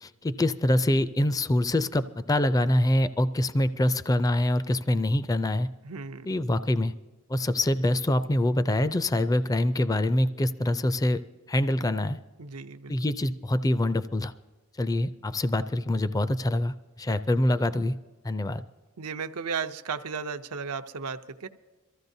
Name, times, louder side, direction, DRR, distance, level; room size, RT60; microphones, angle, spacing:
voice 1, 0.0-5.7 6.3-6.9 7.3-11.2 11.5-12.2 12.9-14.3 14.8-17.9 18.2-18.6, left 1 dB, 15° left, 13 dB, 0.4 m, -25 dB
voice 2, 5.8-6.3 12.4-12.9 19.0-21.5, right 5 dB, 90° right, 8 dB, 0.7 m, -34 dB
23.0 x 14.5 x 2.7 m, 1.3 s
head